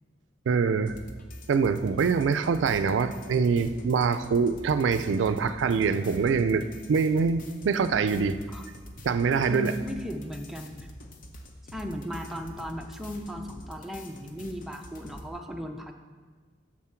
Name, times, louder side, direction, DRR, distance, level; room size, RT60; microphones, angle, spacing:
voice 1, 0.5-1.0 1.5-8.4 9.0-9.7, right 5 dB, 80° right, 11 dB, 0.4 m, -24 dB
sound 1, 0.9-15.3, left 1 dB, 45° left, 0.7 m, -45 dB
voice 2, 9.5-10.7 11.7-15.9, equal, ahead, 3 dB, 0.5 m, -36 dB
7.4 x 6.3 x 4.4 m, 1.4 s
head